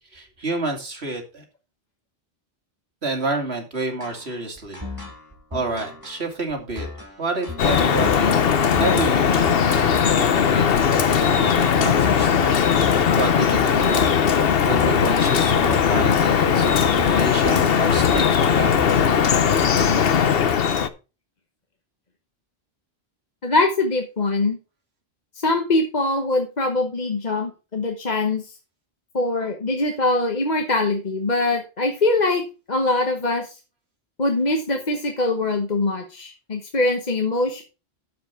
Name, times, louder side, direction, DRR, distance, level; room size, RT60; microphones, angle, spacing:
voice 1, 0.1-1.4 3.0-4.8 5.5-6.9 7.2-14.1 14.7-19.0, right 2 dB, 75° right, 3 dB, 2.7 m, -29 dB
sound 1, 4.0-19.9, left 2 dB, 20° right, 2.9 m, -36 dB
Drip, 7.6-20.9, left 7 dB, 65° left, 1.0 m, -19 dB
voice 2, 23.4-24.6 25.4-28.4 29.1-33.6 34.2-37.6, left 2 dB, 45° left, 4 dB, 1.3 m, -23 dB
9.2 x 7.7 x 4.4 m, 0.31 s
omnidirectional pair, 1.1 m